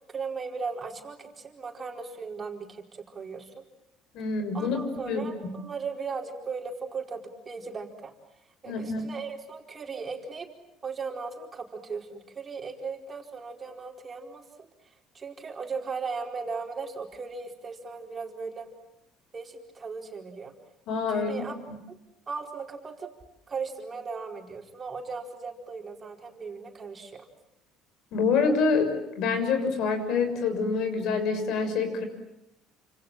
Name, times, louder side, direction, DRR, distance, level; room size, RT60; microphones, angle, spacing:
voice 1, 0.1-3.5 4.5-8.1 8.6-10.5 10.8-14.7 15.1-18.7 19.3-20.5 21.1-21.6 21.9-22.0 22.3-23.1 23.5-27.3, right 4 dB, 25° right, 2 dB, 4.7 m, -37 dB
voice 2, 4.1-4.8 5.0-5.6 8.6-9.0 20.9-21.4 28.1-32.0, left 4 dB, 65° left, 8 dB, 6.7 m, -26 dB
29.5 x 27.0 x 7.6 m, 0.85 s
cardioid pair, 130°, 0 cm